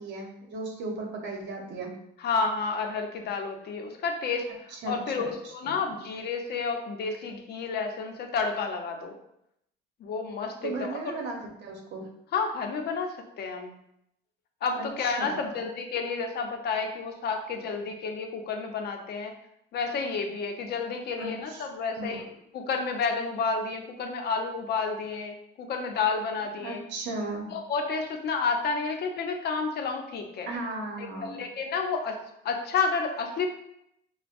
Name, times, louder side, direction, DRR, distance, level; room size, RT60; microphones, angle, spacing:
voice 1, 0.0-1.9 4.7-6.0 10.6-12.1 14.7-15.7 21.2-21.7 22.0-22.3 26.6-27.5 30.4-31.4, right 2 dB, 55° right, 1 dB, 1.0 m, -36 dB
voice 2, 2.2-9.1 10.0-10.7 12.3-13.7 14.6-19.3 19.7-22.2 22.5-26.8 27.5-30.5 31.0-32.2 32.4-33.5, left 4 dB, 50° left, 4 dB, 0.7 m, -30 dB
5.8 x 2.2 x 2.5 m, 0.78 s
cardioid pair, 105°, 21 cm